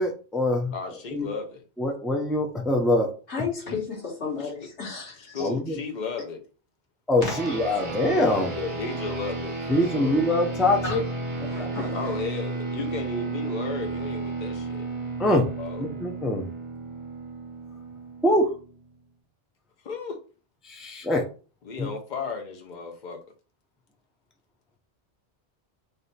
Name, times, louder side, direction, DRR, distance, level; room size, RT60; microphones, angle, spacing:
voice 1, 0.0-0.7 1.1-1.3 1.8-3.1 5.4-5.8 7.1-8.5 9.7-11.0 11.4-11.7 15.2-15.4 16.0-16.5 18.2-18.5 20.6-21.2 21.8-21.9, left 1 dB, ahead, 0.5 m, -24 dB
voice 2, 0.7-1.6 3.7-3.8 4.4-4.7 5.3-6.4 8.5-10.2 11.9-14.9 15.3-15.9 19.8-20.2 21.6-23.2, left 4 dB, 45° left, 0.9 m, -35 dB
voice 3, 3.3-5.4 7.2-7.8 10.8-11.0 11.5-12.1, left 5 dB, 85° left, 1.6 m, -33 dB
sound 1, 7.2-18.9, right 3 dB, 30° right, 0.9 m, -33 dB
3.3 x 2.7 x 4.1 m
omnidirectional pair, 1.1 m